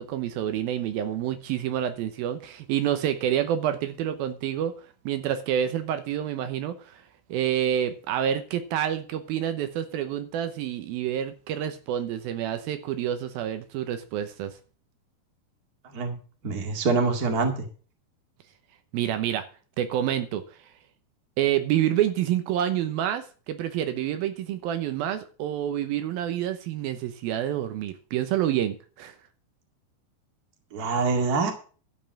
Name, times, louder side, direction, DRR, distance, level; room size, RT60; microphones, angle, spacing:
voice 1, 0.0-4.7 5.1-7.0 7.3-14.6 18.9-19.5 19.8-20.4 21.4-29.2, right 10 dB, 75° right, 9 dB, 2.7 m, -28 dB
voice 2, 16.4-17.6 30.7-31.5, right 4 dB, 30° right, 4 dB, 1.9 m, -25 dB
12.5 x 5.5 x 7.6 m, 0.39 s
omnidirectional pair, 4.4 m